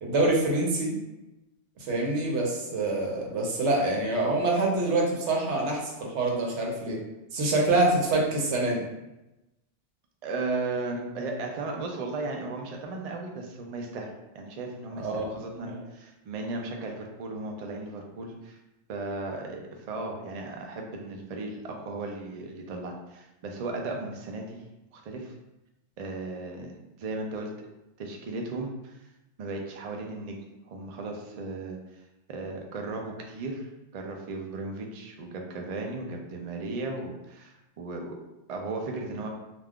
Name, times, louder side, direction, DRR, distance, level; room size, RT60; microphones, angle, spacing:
voice 1, 0.0-1.0 1.8-7.0 7.3-8.8 15.0-15.3, right 2 dB, 80° right, -1 dB, 1.0 m, -26 dB
voice 2, 10.2-18.6 18.9-24.6 24.9-25.3 26.0-27.7 28.0-29.0 29.4-30.4 30.7-31.8 32.3-38.2 38.5-39.3, right 3 dB, 60° right, 1 dB, 0.4 m, -36 dB
2.4 x 2.3 x 3.5 m, 0.98 s
omnidirectional pair, 1.2 m